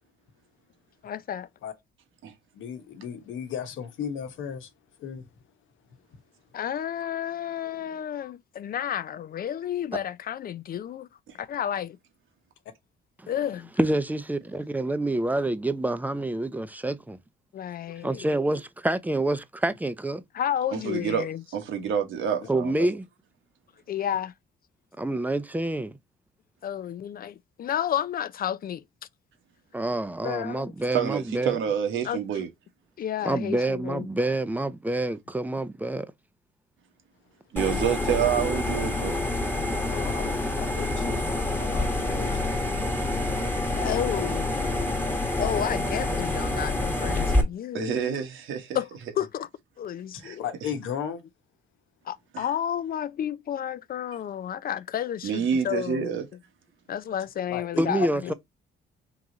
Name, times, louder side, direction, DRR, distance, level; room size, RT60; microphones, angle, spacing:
voice 1, 1.0-1.5 6.5-11.1 11.3-12.0 13.3-13.7 17.5-18.3 20.3-21.4 23.9-24.3 26.6-28.8 30.2-30.7 32.0-32.2 33.0-34.1 43.8-44.6 45.4-48.2 48.7-48.9 49.2-49.5 49.8-50.5 52.1-56.2 56.9-58.3, left 10 dB, 50° left, 0.4 m, -31 dB
voice 2, 2.5-4.7 5.0-5.3 22.4-22.5 39.9-41.3 41.6-42.6 50.1-51.2 57.5-57.9 58.3-58.4, left 8 dB, 80° left, 1.0 m, -36 dB
voice 3, 13.8-17.2 18.0-20.2 22.5-23.0 25.0-26.0 29.7-31.6 33.2-36.1 57.8-58.3, right 2 dB, 10° right, 0.5 m, -27 dB
voice 4, 20.7-21.3 21.5-22.9 30.9-32.5 37.5-39.2 47.7-48.8 50.2-50.4 52.3-52.4 55.2-56.3, right 8 dB, 80° right, 1.3 m, -28 dB
sound 1, 37.6-47.4, left 2 dB, 10° left, 1.2 m, -27 dB
3.7 x 3.0 x 3.8 m
cardioid pair, 90°, 20 cm